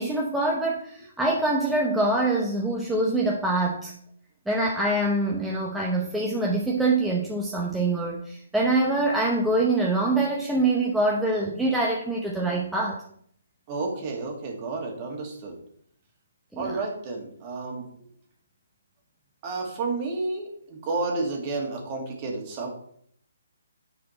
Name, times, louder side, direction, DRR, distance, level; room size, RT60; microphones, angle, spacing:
voice 1, 0.0-3.9 4.5-13.0 16.5-16.8, right 2 dB, 5° right, -3 dB, 0.7 m, -25 dB
voice 2, 13.7-15.6 16.6-17.9 19.4-22.7, right 3 dB, 30° right, 1 dB, 1.8 m, -31 dB
9.2 x 4.2 x 4.2 m, 0.65 s
hypercardioid pair, 160°, 0 cm